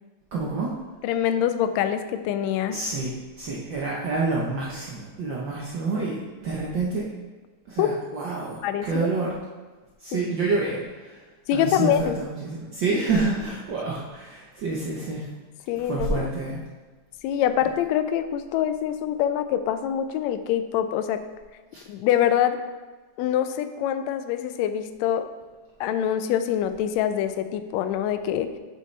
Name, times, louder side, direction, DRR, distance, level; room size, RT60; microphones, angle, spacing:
voice 1, 0.3-0.8 2.7-7.1 7.7-9.4 10.0-11.2 11.5-15.3 15.9-16.6 21.7-21.8, right 3 dB, 85° right, -4 dB, 1.0 m, -28 dB
voice 2, 1.0-2.8 7.8-7.9 8.6-9.1 10.1-10.2 11.5-12.2 15.7-16.3 17.2-21.2 21.9-22.6 23.2-25.3 25.8-28.5, left 10 dB, 80° left, 9 dB, 1.7 m, -25 dB
8.4 x 6.8 x 3.2 m, 1.3 s
omnidirectional pair, 3.3 m